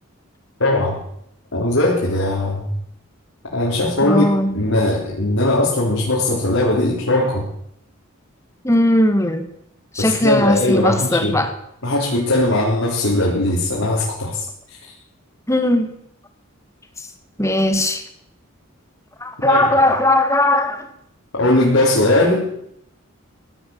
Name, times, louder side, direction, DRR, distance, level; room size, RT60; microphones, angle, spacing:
voice 1, 0.6-1.0 1.5-2.7 3.5-7.5 10.0-11.3 11.8-14.4 19.4-19.7 21.3-22.5, left 1 dB, 75° left, -4 dB, 3.9 m, -19 dB
voice 2, 4.0-4.6 8.6-9.5 9.9-11.5 15.5-15.9 17.4-18.0 19.2-20.9, left 1 dB, 15° left, 8 dB, 1.6 m, -18 dB
17.0 x 11.0 x 7.2 m, 0.73 s
head